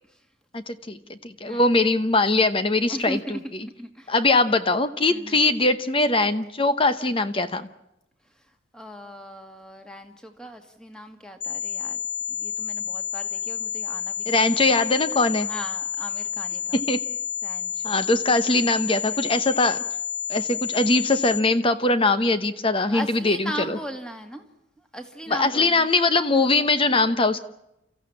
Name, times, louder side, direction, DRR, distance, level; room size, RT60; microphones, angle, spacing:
voice 1, 0.5-3.4 4.1-7.7 14.3-15.5 16.7-17.0 17.8-19.8 20.3-23.8 25.3-27.4, left 2 dB, 25° left, 11 dB, 0.9 m, -21 dB
voice 2, 2.9-4.1 5.1-5.4 8.3-8.5 8.7-12.0 12.3-14.7 15.5-16.8 17.4-18.0 22.9-24.4 24.8-25.9, equal, 5° left, 6 dB, 2.0 m, -38 dB
sound 1, 11.4-21.4, left 8 dB, 60° left, 2.8 m, -30 dB
30.0 x 15.0 x 8.7 m, 0.87 s
head